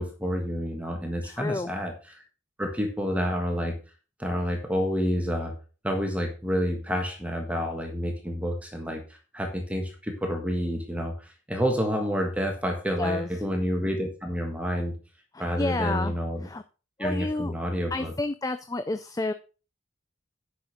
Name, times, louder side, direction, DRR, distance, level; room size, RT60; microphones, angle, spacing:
voice 1, 0.0-2.1 2.6-3.8 4.2-5.5 5.8-14.9 15.4-16.5 17.0-18.1, equal, 5° right, 2 dB, 1.5 m, -29 dB
voice 2, 1.2-1.7 13.0-13.3 15.3-16.1 16.4-16.6 17.0-17.5 17.9-19.3, left 2 dB, 15° left, 10 dB, 0.4 m, -30 dB
9.4 x 6.2 x 5.1 m, 0.35 s
head